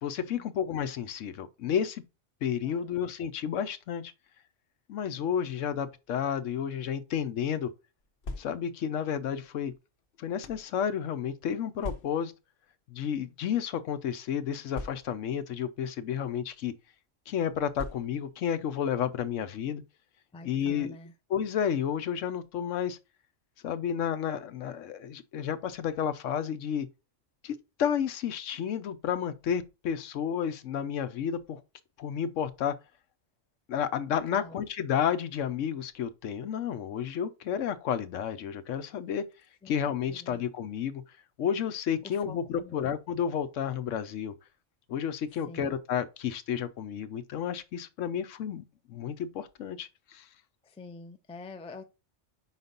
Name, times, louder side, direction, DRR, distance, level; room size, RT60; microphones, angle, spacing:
voice 1, 0.0-2.0 2.4-4.1 4.9-7.7 8.4-9.7 10.2-12.3 12.9-16.7 17.3-19.8 20.4-21.0 21.3-23.0 23.6-26.9 27.4-31.6 32.0-32.7 33.7-39.2 39.7-41.0 41.4-44.3 44.9-48.6 48.9-50.3, left 8 dB, 80° left, 1.0 m, -31 dB
sound 1, 8.0-8.9 9.7-10.7 11.8-12.4 13.3-13.5 13.7-13.8 14.7-15.4 16.3-16.5 17.7-18.4, left 2 dB, 50° left, 0.9 m, -41 dB
voice 2, 20.3-21.1 34.3-34.6 39.6-39.8 40.1-40.4 42.0-42.9 45.5-45.8 50.6-51.8, left 3 dB, 10° left, 0.3 m, -46 dB
5.1 x 4.1 x 5.2 m
omnidirectional pair, 1.3 m